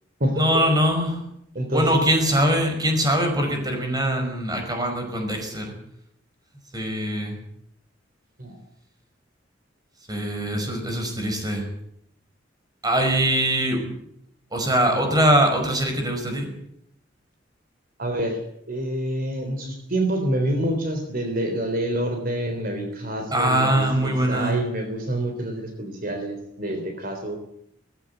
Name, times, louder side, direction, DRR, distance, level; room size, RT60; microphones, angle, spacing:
voice 1, 0.4-1.2 1.7-5.7 6.7-7.4 10.1-11.6 12.8-13.9 14.5-16.5 23.3-24.6, right 1 dB, 20° right, 4 dB, 5.3 m, -22 dB
voice 2, 1.6-2.0 8.4-8.6 18.0-18.4 18.7-27.4, right 1 dB, 50° right, 5 dB, 3.6 m, -27 dB
18.5 x 16.0 x 9.3 m, 0.74 s
head